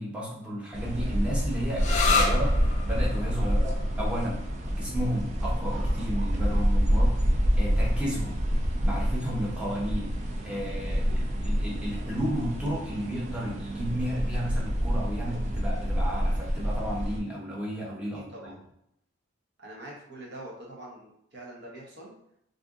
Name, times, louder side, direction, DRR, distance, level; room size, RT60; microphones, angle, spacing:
voice 1, 0.0-2.6 2.8-4.4 4.7-7.3 7.6-8.3 8.8-10.1 10.4-18.5, equal, 5° right, -5 dB, 0.7 m, -33 dB
sound 1, 0.7-17.2, equal, 35° right, 0.4 m, -27 dB
sound 2, 1.8-9.2, left 4 dB, 35° left, 0.4 m, -33 dB
voice 2, 7.9-8.2 10.8-11.2 18.1-18.7 19.6-22.1, right 1 dB, 55° right, -3 dB, 0.9 m, -45 dB
2.6 x 2.5 x 3.6 m, 0.76 s
head